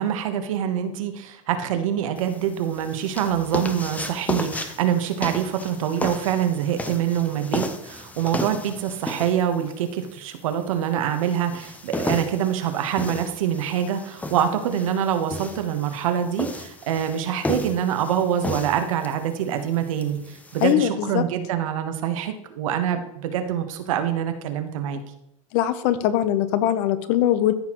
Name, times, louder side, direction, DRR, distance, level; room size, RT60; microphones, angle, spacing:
voice 1, 0.0-25.0, right 9 dB, 75° right, 7 dB, 1.2 m, -25 dB
sound 1, 2.2-20.7, left 2 dB, 10° left, 0.7 m, -34 dB
voice 2, 20.6-21.2 25.5-27.5, left 12 dB, 55° left, 12 dB, 0.8 m, -21 dB
14.0 x 5.8 x 3.1 m, 0.80 s
supercardioid pair, 125°, 17 cm